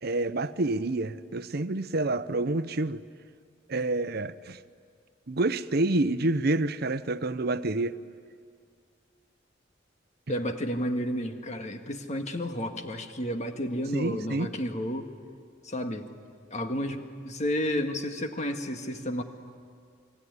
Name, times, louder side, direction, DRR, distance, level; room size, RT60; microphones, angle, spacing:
voice 1, 0.0-3.0 3.7-4.6 5.3-8.0 13.9-14.5, right 2 dB, 55° right, 0.8 m, -28 dB
voice 2, 10.3-15.1 15.6-16.1 16.5-19.2, equal, 40° left, 1.8 m, -31 dB
27.5 x 22.5 x 9.7 m
head